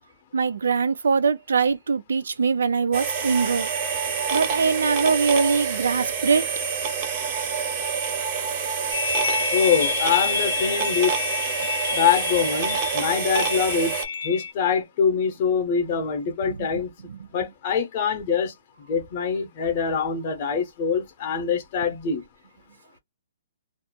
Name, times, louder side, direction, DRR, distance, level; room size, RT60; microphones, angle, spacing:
voice 1, 0.3-3.7 4.3-6.5 16.6-16.7 17.1-17.2, right 5 dB, 80° right, 0.4 m, -22 dB
sound 1, 2.9-14.1, right 6 dB, 20° right, 0.4 m, -27 dB
sound 2, 8.9-14.5, left 6 dB, 70° left, 0.5 m, -28 dB
voice 2, 9.5-11.1 11.9-13.9 14.2-16.9 17.3-18.5 18.9-22.2, left 6 dB, 25° left, 0.6 m, -24 dB
2.4 x 2.1 x 2.8 m
hypercardioid pair, 180°, 0 cm